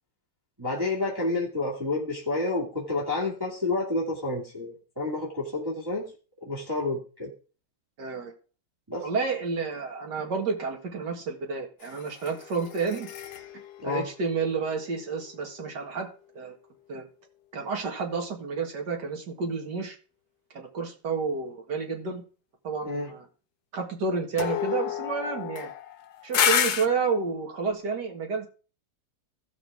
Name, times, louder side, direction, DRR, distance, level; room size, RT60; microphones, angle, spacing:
voice 1, 0.6-6.1 6.4-7.3 8.9-9.1 13.8-14.1 22.8-23.1, left 2 dB, 10° right, -4 dB, 2.1 m, -29 dB
voice 2, 8.0-8.3 9.0-13.1 13.8-16.1 16.3-16.6 16.9-17.1 17.5-20.0 20.5-22.2 22.6-23.3 23.7-25.7 26.2-28.5, right 5 dB, 60° right, 2 dB, 2.4 m, -30 dB
sound 1, 11.8-15.3 24.4-26.9, left 9 dB, 65° left, 1.1 m, -30 dB
15.5 x 6.3 x 3.6 m, 0.36 s
omnidirectional pair, 2.1 m